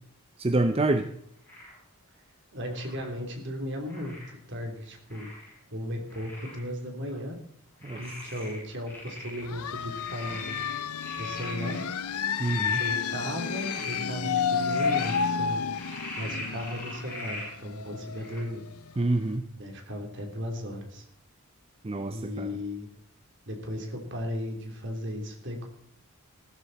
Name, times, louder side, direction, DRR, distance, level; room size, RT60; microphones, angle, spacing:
voice 1, 0.4-1.1 7.8-8.1 12.4-12.8 19.0-19.5 21.8-22.6, right 2 dB, 25° right, 8 dB, 0.6 m, -27 dB
Frog, 1.5-1.8 2.7-3.1 3.9-4.3 5.1-5.6 6.1-6.6 7.1-7.2 7.8-9.4 9.8-11.8 12.3-12.9 13.4-14.0 14.5-15.2 15.7-17.5 18.2-18.4, left 1 dB, 10° left, 5.8 m, -41 dB
voice 2, 2.5-4.2 4.5-5.3 5.7-7.3 7.9-10.6 11.2-11.8 12.7-15.6 16.2-18.6 19.6-21.0 22.1-22.9 23.5-25.7, left 1 dB, 55° right, 3 dB, 3.3 m, -35 dB
sound 1, 9.4-18.9, left 6 dB, 85° left, 0.6 m, -31 dB
15.0 x 13.0 x 4.2 m, 0.73 s
head